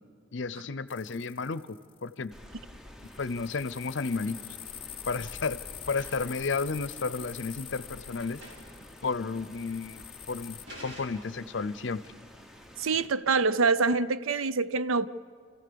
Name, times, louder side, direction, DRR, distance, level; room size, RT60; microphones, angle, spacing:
voice 1, 0.3-2.3 3.2-4.4 5.1-5.6 5.9-8.4 9.0-12.0, left 4 dB, 65° left, 16 dB, 0.6 m, -32 dB
sound 1, 0.9-2.1 3.1-10.7, left 11 dB, 25° left, 0.4 m, -45 dB
Rain, 2.3-13.1, equal, ahead, 0.8 m, -50 dB
sound 2, 4.6-4.8 5.1-6.5 7.4-7.5 7.8-7.9 8.2-8.8 9.1-9.2 10.0-10.1 10.7-11.6, equal, 65° right, 4.8 m, -49 dB
voice 2, 12.8-15.1, right 4 dB, 85° right, 15 dB, 0.6 m, -25 dB
29.5 x 15.0 x 6.9 m, 2.3 s
head